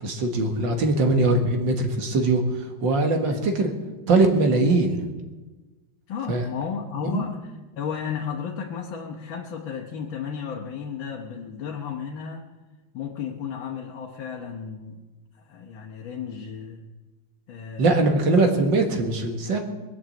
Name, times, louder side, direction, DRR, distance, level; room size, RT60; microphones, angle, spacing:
voice 1, 0.0-2.4 2.8-3.7 4.1-5.0 6.3-6.4 7.1-7.2 17.8-19.6, right 2 dB, 70° right, 4 dB, 2.4 m, -21 dB
voice 2, 6.1-12.5 12.9-15.0 15.5-16.8 17.5-18.4, left 7 dB, 75° left, 0 dB, 1.9 m, -34 dB
22.0 x 7.4 x 7.7 m, 1.2 s
omnidirectional pair, 2.1 m